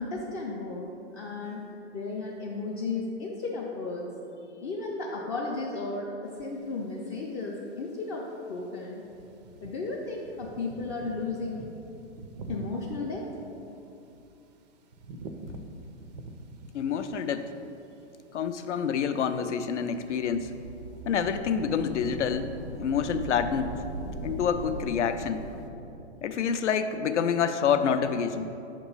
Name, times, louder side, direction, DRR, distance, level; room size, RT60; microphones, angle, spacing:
voice 1, 0.0-4.1 4.6-9.0 9.6-11.6 12.5-13.3, left 3 dB, 25° left, -4 dB, 0.4 m, -34 dB
sound 1, 6.3-25.7, right 2 dB, 40° right, 0.4 m, -49 dB
voice 2, 16.7-17.5 18.3-20.5 21.0-22.5 22.8-23.8 24.2-25.5 26.2-28.5, left 7 dB, 80° left, 9 dB, 0.5 m, -27 dB
sound 2, 19.8-26.3, right 2 dB, 80° right, 0.8 m, -40 dB
6.2 x 3.0 x 5.3 m, 2.7 s
hypercardioid pair, 115°, 35 cm